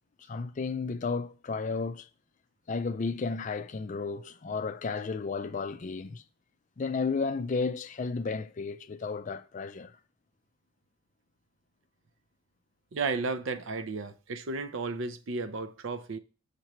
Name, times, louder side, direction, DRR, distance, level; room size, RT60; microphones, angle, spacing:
voice 1, 0.3-2.1 2.7-6.2 6.8-10.0, left 4 dB, 35° left, 0.4 m, -33 dB
voice 2, 12.9-16.2, right 4 dB, 65° right, 0.6 m, -33 dB
6.6 x 3.1 x 5.9 m
head